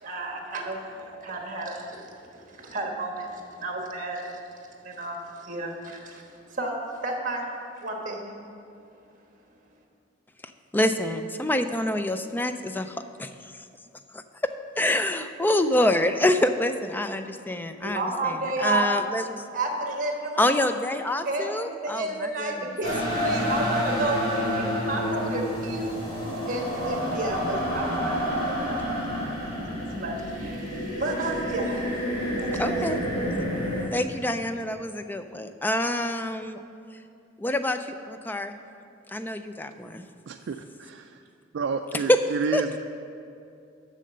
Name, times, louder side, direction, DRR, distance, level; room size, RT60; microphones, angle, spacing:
voice 1, 0.0-4.4 4.8-7.5 7.8-8.3 17.8-18.9 19.5-20.5 21.2-25.9 26.5-32.0 32.4-33.0, right 2 dB, 45° right, 1 dB, 1.3 m, -32 dB
voice 2, 10.7-13.3 14.8-19.3 20.4-22.5 32.6-33.0 33.9-36.6 37.4-38.5 39.1-40.0 42.1-42.2 42.5-42.6, left 1 dB, 10° left, 9 dB, 0.3 m, -26 dB
sound 1, 22.8-33.9, equal, 30° left, 1.9 m, -29 dB
voice 3, 40.3-41.2 41.5-42.8, right 5 dB, 70° right, 5 dB, 0.3 m, -30 dB
7.6 x 6.3 x 6.7 m, 2.5 s
head